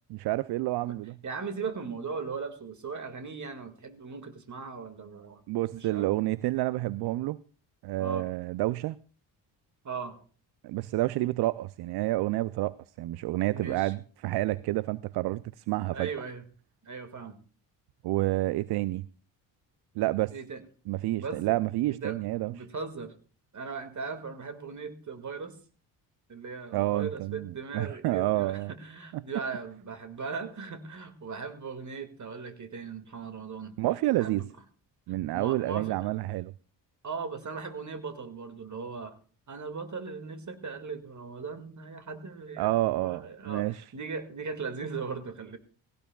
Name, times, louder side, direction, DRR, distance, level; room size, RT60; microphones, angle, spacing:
voice 1, 0.1-1.1 5.5-7.4 7.8-9.0 10.6-16.1 18.0-19.1 20.0-20.3 20.9-22.5 26.7-28.7 33.8-34.4 35.1-36.5 42.6-43.8, right 17 dB, 55° right, 0.5 m, -29 dB
voice 2, 1.2-5.4 5.7-6.1 8.0-8.3 9.8-10.2 13.5-13.9 15.9-16.4 16.8-17.4 20.3-20.6 21.2-21.4 21.9-22.2 22.5-23.1 23.5-25.5 26.3-33.8 34.2-34.4 35.3-36.0 37.0-39.1 39.5-42.7 43.0-45.6, right 5 dB, 35° right, 2.0 m, -38 dB
18.0 x 16.5 x 2.3 m
hypercardioid pair, 50°, 49 cm